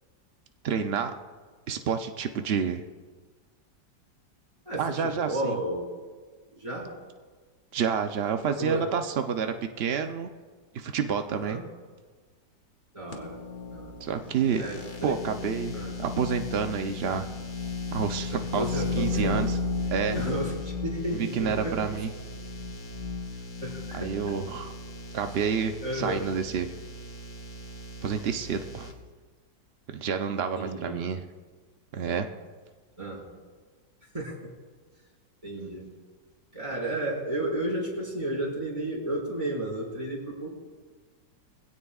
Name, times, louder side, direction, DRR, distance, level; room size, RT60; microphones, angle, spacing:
voice 1, 0.6-1.1 1.7-2.8 4.8-5.6 7.7-10.3 10.7-11.6 14.0-14.6 15.0-17.3 17.9-19.6 19.9-20.2 21.1-22.1 23.9-24.7 25.1-26.7 28.0-28.9 29.9-31.2 31.9-32.3, right 7 dB, 80° right, 6 dB, 0.5 m, -29 dB
voice 2, 4.6-5.9 6.5-7.0 8.6-8.9 11.3-11.6 12.9-13.4 13.7-13.9 14.6-15.1 15.7-15.9 18.3-19.5 20.1-21.8 23.6-24.1 25.8-26.2 30.6-31.0 33.0-33.3 34.1-34.5 35.4-35.9 36.5-40.5, right 1 dB, 15° right, -5 dB, 4.7 m, -32 dB
sound 1, 13.1-28.9, left 3 dB, 45° left, 1.6 m, -35 dB
21.5 x 16.5 x 2.4 m, 1.5 s
omnidirectional pair, 1.9 m